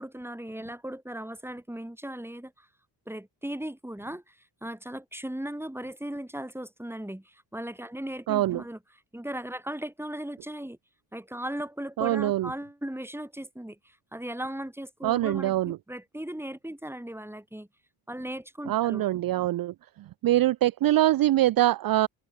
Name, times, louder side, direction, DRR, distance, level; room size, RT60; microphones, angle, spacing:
voice 1, 0.0-2.7 3.1-4.4 4.6-8.8 9.1-10.8 11.1-17.7 18.1-19.1, right 1 dB, 5° right, 5.1 m, -37 dB
voice 2, 8.3-8.6 12.0-12.5 15.0-15.8 18.7-19.7 20.2-22.1, right 14 dB, 55° right, 0.5 m, -23 dB
open air
cardioid pair, 65°, 44 cm